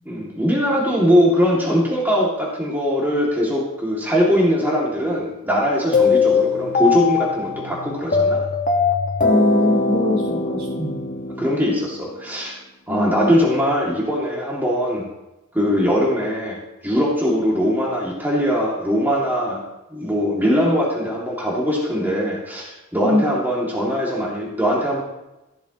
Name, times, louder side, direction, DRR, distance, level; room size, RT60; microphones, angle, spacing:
voice 1, 0.1-8.4 11.4-12.5 12.9-15.1 15.5-16.6 16.8-19.6 19.9-25.0, equal, 10° right, -5 dB, 2.5 m, -21 dB
sound 1, 5.9-12.1, left 5 dB, 40° left, 1.7 m, -21 dB
voice 2, 9.2-11.0 12.9-13.3 23.0-23.2, left 1 dB, 55° right, -2 dB, 4.5 m, -22 dB
15.0 x 12.5 x 3.1 m, 0.97 s
head